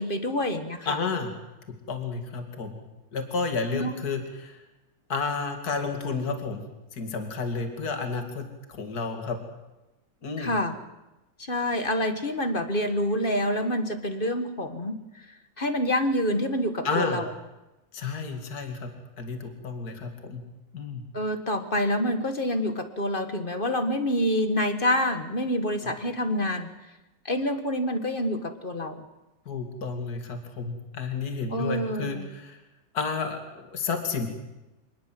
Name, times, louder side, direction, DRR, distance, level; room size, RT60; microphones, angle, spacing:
voice 1, 0.0-1.0 3.7-3.9 10.4-10.8 11.5-15.0 15.6-17.3 21.1-26.7 27.3-29.0 31.5-32.3, left 1 dB, 30° left, 8 dB, 1.7 m, -27 dB
voice 2, 0.9-1.3 1.9-2.8 3.1-4.6 5.1-6.6 6.9-9.4 10.2-10.6 16.8-17.2 17.9-18.9 19.2-20.4 20.7-21.0 25.8-25.9 29.5-32.6 32.9-34.3, left 4 dB, 50° left, 5 dB, 2.9 m, -31 dB
25.5 x 20.0 x 7.8 m, 1.0 s
omnidirectional pair, 2.1 m